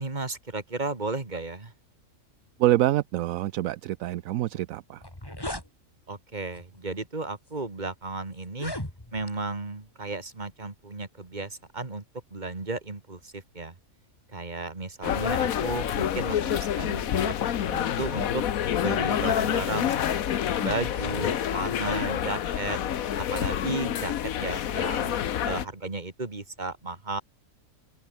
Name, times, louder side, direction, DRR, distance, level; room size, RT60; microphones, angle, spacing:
voice 1, 0.0-1.7 6.1-8.7 9.1-12.0 12.3-13.7 14.3-18.4 18.8-22.8 23.2-24.1 24.4-25.1 25.4-27.2, right 3 dB, 30° right, 2.5 m, -34 dB
voice 2, 2.6-5.0, right 14 dB, 75° right, 1.0 m, -26 dB
sound 1, 4.6-4.7 4.9-5.7 6.5-6.8 7.5-7.6 8.4-9.4, left 1 dB, 15° left, 3.8 m, -37 dB
sound 2, 15.0-25.7, left 10 dB, 80° left, 1.4 m, -28 dB
open air
omnidirectional pair, 1.5 m